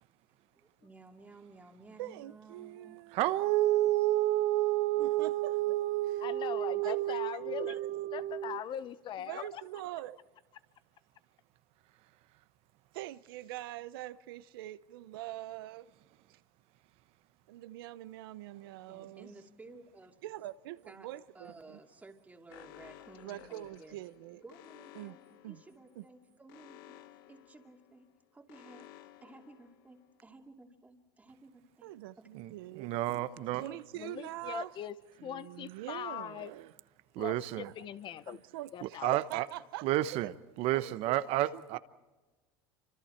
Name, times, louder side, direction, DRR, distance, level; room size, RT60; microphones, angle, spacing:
voice 1, 0.5-3.0 18.9-20.2 20.9-21.1 21.3-24.0 24.4-25.2 25.5-28.1 28.3-28.9 29.2-31.9 32.2-32.3, right 3 dB, 15° right, 2.6 m, -55 dB
voice 2, 2.0-3.2 5.0-5.5 6.8-7.4 7.7-7.9 9.3-10.2 12.9-15.9 16.3-16.4 17.5-19.3 20.2-21.8 23.2-24.4 24.9-25.1 25.4-25.6 26.0-26.1 31.8-32.9 33.6-34.7 35.2-36.7 37.6-37.7 38.3-39.8 40.7-41.2 41.7-41.8, right 15 dB, 85° right, 0.8 m, -44 dB
voice 3, 3.1-8.6 32.3-33.6 37.1-37.7 38.8-39.5 39.8-41.8, right 15 dB, 60° right, 1.0 m, -30 dB
voice 4, 6.2-7.8 8.1-9.6 33.6-34.9 35.2-36.5 37.2-38.4 38.7-39.2, left 10 dB, 40° left, 1.0 m, -41 dB
Alarm, 22.5-30.3, left 13 dB, 80° left, 1.3 m, -56 dB
29.0 x 25.5 x 4.5 m
supercardioid pair, 110°, 12 cm